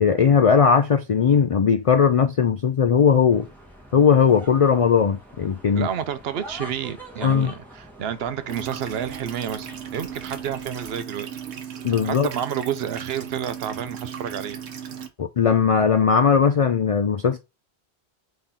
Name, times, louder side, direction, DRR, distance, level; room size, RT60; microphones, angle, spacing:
voice 1, 0.0-3.5 3.9-5.9 7.2-7.5 11.8-12.3 15.2-17.4, left 6 dB, 60° left, 0.3 m, -18 dB
sound 1, 3.3-11.0, right 1 dB, ahead, 1.5 m, -44 dB
voice 2, 5.8-11.3 12.0-14.6, right 9 dB, 70° right, 0.8 m, -30 dB
sound 2, 8.5-15.1, right 8 dB, 90° right, 1.1 m, -36 dB
3.7 x 3.3 x 4.1 m
omnidirectional pair, 1.1 m